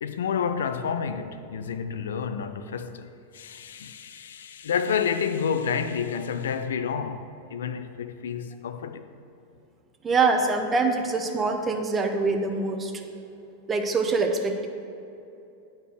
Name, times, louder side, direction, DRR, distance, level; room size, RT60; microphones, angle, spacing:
voice 1, 0.0-3.1 3.3-9.1, left 7 dB, 65° left, 0.4 m, -29 dB
voice 2, 10.0-12.9 13.7-14.7, right 3 dB, 20° right, 0.7 m, -24 dB
8.9 x 4.4 x 4.6 m
figure-of-eight pair, 90°, 0 cm